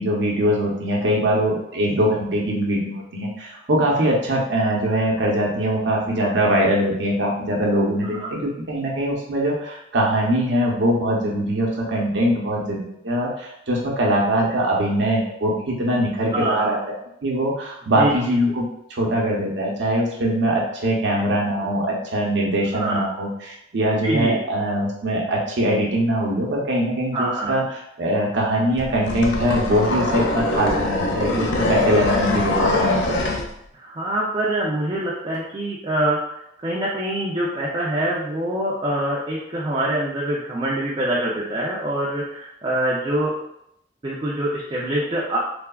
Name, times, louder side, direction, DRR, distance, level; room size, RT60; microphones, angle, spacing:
voice 1, 0.0-16.9 17.2-18.6 18.9-33.2, right 1 dB, 75° right, -3 dB, 0.7 m, -22 dB
voice 2, 16.3-16.7 18.0-18.1 22.7-23.0 24.0-24.3 27.1-27.5 33.8-36.2 36.6-43.3 44.0-45.4, right 1 dB, 25° right, -5 dB, 0.4 m, -24 dB
sound 1, 28.8-33.5, left 2 dB, 80° left, 0.4 m, -23 dB
3.2 x 2.0 x 2.2 m, 0.78 s
head